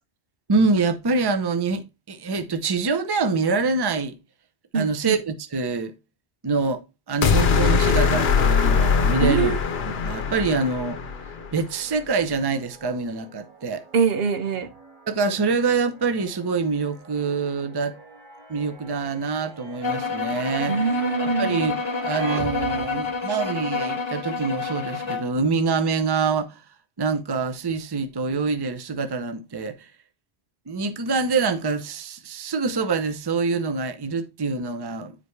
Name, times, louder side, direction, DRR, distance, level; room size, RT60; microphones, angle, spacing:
voice 1, 0.5-4.2 4.7-5.9 6.4-6.8 7.1-9.5 9.8-11.0 11.5-13.8 15.1-18.0 18.5-20.7 21.2-21.8 22.0-26.6 27.0-29.9 30.7-35.2, right 4 dB, 25° right, 0.6 m, -25 dB
voice 2, 4.7-5.2 9.2-9.6 13.9-14.7 20.7-21.6, right 5 dB, 70° right, 0.9 m, -23 dB
sound 1, 7.2-11.5, left 6 dB, 70° left, 1.0 m, -21 dB
sound 2, 10.6-23.2, right 3 dB, 45° right, 2.2 m, -44 dB
sound 3, 19.8-25.3, left 5 dB, 30° left, 0.8 m, -29 dB
9.5 x 5.1 x 3.2 m
omnidirectional pair, 1.1 m